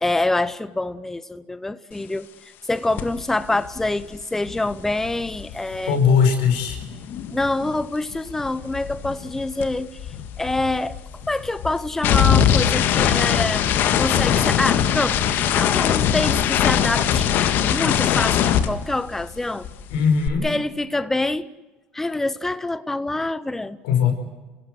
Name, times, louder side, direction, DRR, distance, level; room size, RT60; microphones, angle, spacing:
voice 1, 0.0-6.0 7.3-10.0 10.4-11.0 11.3-13.7 14.0-17.3 17.6-19.7 20.4-21.5 21.9-23.8, left 2 dB, 10° left, 15 dB, 0.8 m, -26 dB
sound 1, 3.0-3.2 3.5-19.4 19.6-20.3, left 9 dB, 60° left, 1.7 m, -22 dB
voice 2, 5.9-6.8 19.9-20.5 23.8-24.1, left 6 dB, 90° left, 6 dB, 5.4 m, -19 dB
29.0 x 16.5 x 8.0 m, 1.2 s
supercardioid pair, 105°, 4 cm